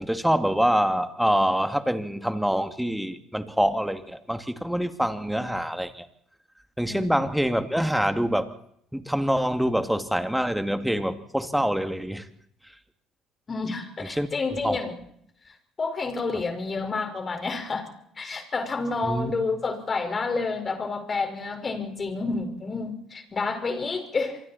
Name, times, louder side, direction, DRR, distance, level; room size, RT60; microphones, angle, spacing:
voice 1, 0.0-6.1 6.8-8.5 8.9-12.3 14.0-14.3 14.6-14.8 19.1-19.3, equal, 5° right, 8 dB, 2.5 m, -25 dB
voice 2, 13.5-14.9 15.8-17.9 18.2-24.4, left 4 dB, 35° left, 6 dB, 5.2 m, -29 dB
27.0 x 23.5 x 4.4 m, 0.69 s
hypercardioid pair, 65°, 0 cm